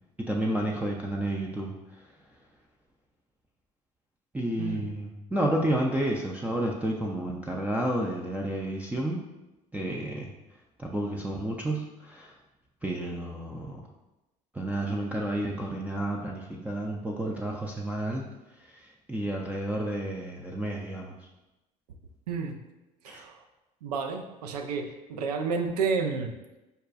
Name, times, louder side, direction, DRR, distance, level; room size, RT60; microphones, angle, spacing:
voice 1, 0.2-2.0 4.3-9.2 9.7-10.3 10.8-12.3 12.8-13.8 14.5-18.3 18.6-21.1 23.1-23.3, right 1 dB, 5° right, -2 dB, 0.4 m, -31 dB
voice 2, 22.3-22.6 23.0-23.4 23.8-26.6, right 5 dB, 85° right, 5 dB, 0.4 m, -31 dB
5.3 x 2.2 x 2.5 m, 1.0 s
hypercardioid pair, 65°, 20 cm